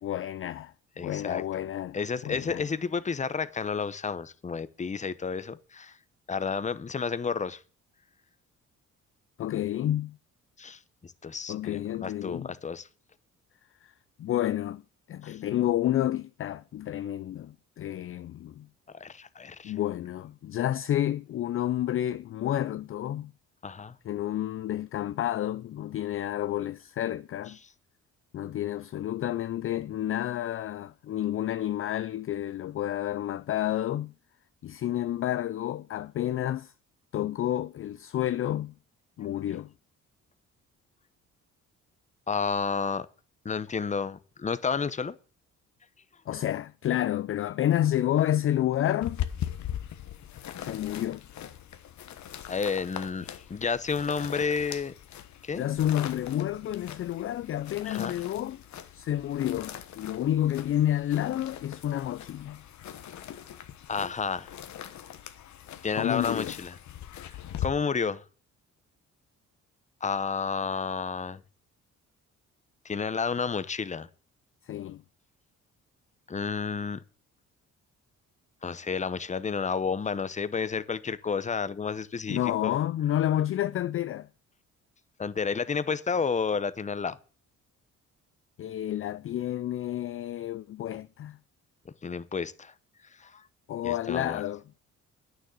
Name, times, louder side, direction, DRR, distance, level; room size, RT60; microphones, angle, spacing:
voice 1, 0.0-0.7 1.0-2.0 2.2-2.6 9.4-10.2 11.5-12.5 13.8-13.9 14.2-14.8 15.1-18.7 19.6-23.3 24.1-27.6 28.3-34.1 34.6-36.7 37.1-38.7 39.2-39.7 46.3-49.2 50.6-51.2 55.5-58.6 58.9-62.6 66.0-66.5 74.7-75.0 82.3-84.3 88.6-91.4 93.7-94.6, left 12 dB, 45° left, 0.4 m, -30 dB
voice 2, 1.0-1.4 1.9-6.0 6.3-7.6 10.6-12.9 15.2-15.4 18.9-19.7 23.6-24.0 42.3-43.1 43.4-45.2 52.5-54.9 55.4-55.7 57.8-58.1 63.9-64.5 65.8-66.8 67.6-68.2 70.0-71.4 72.8-74.1 76.3-77.0 78.6-82.7 85.2-87.2 92.0-92.7 93.2-93.5 93.8-94.4, left 5 dB, 25° left, 0.7 m, -31 dB
sound 1, 49.0-67.7, left 11 dB, 70° left, 1.1 m, -40 dB
9.2 x 6.8 x 7.6 m
cardioid pair, 90°, 30 cm